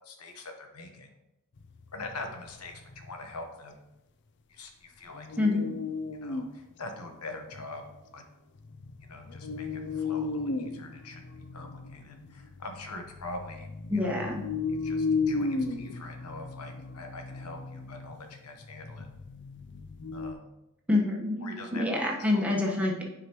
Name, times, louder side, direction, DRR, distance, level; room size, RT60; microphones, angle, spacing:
voice 1, 0.1-1.1 1.9-3.7 4.5-5.3 6.2-7.8 8.1-8.2 9.1-11.2 11.5-13.7 14.0-14.3 14.8-19.1 20.1-20.4 21.4-22.6, left 2 dB, 80° left, 4 dB, 1.1 m, -43 dB
sound 1, 1.6-3.4 5.1-6.6 6.9-7.0 7.5-8.0 8.5-20.3, left 4 dB, 55° left, 0.5 m, -35 dB
voice 2, 5.4-5.8 13.9-14.5 20.9-23.0, left 2 dB, 5° right, -1 dB, 1.1 m, -27 dB
9.8 x 5.0 x 3.0 m, 0.93 s
head